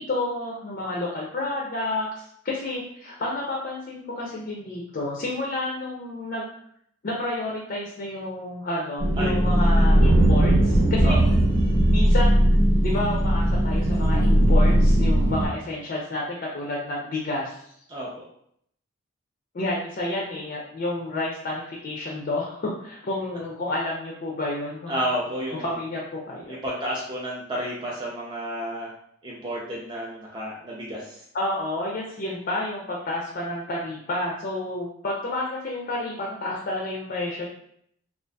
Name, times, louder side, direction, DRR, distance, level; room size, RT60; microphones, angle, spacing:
voice 1, 0.0-6.4 7.0-11.2 11.9-12.4 12.8-17.6 19.5-25.0 25.5-26.6 31.3-37.5, left 2 dB, 45° left, -3 dB, 0.4 m, -30 dB
sound 1, 9.0-15.5, right 1 dB, 85° right, 0.9 m, -19 dB
voice 2, 24.9-25.6 26.5-28.9 29.2-31.2, equal, 20° right, -5 dB, 0.4 m, -31 dB
2.5 x 2.3 x 2.2 m, 0.69 s
head